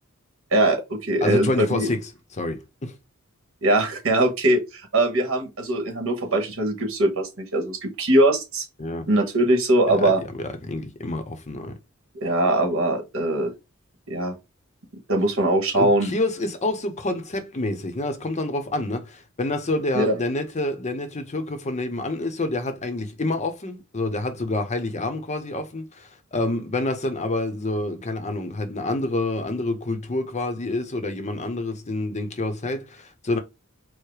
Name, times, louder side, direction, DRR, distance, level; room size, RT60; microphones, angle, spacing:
voice 1, 0.5-1.9 3.6-8.6 9.1-10.2 12.2-13.5 14.1-14.3 15.1-16.1 19.9-20.1, right 1 dB, 70° right, 1.4 m, -21 dB
voice 2, 1.2-2.9 8.8-9.1 9.9-11.7 15.7-33.4, left 2 dB, 35° left, 0.7 m, -28 dB
4.7 x 2.1 x 4.7 m
head